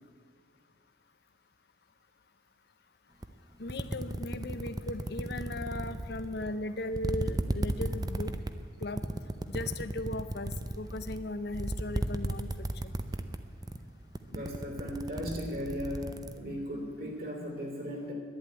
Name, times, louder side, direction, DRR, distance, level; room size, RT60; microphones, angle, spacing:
sound 1, 3.2-3.3 3.7-6.6 6.9-13.4 13.6-13.9 14.2-16.3, right 1 dB, 20° right, 0.6 m, -34 dB
voice 1, 3.6-8.3 8.8-9.0 9.5-13.0, left 2 dB, 55° left, 11 dB, 0.7 m, -37 dB
voice 2, 14.3-18.1, equal, 50° right, 1 dB, 3.3 m, -37 dB
11.5 x 10.5 x 9.5 m, 2.2 s
head